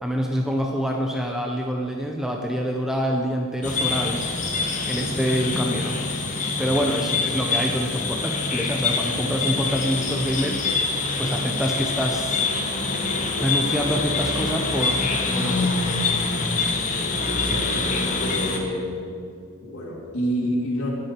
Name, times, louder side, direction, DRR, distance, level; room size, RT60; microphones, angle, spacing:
voice 1, 0.0-4.3 4.9-6.0 6.6-10.7 11.2-12.4 13.4-15.8, equal, ahead, 1 dB, 0.6 m, -26 dB
sound 1, 3.6-18.6, left 3 dB, 35° left, 1.2 m, -25 dB
voice 2, 17.3-18.9 19.6-20.9, equal, 65° left, -5 dB, 2.5 m, -28 dB
20.0 x 7.9 x 4.5 m, 2.4 s
head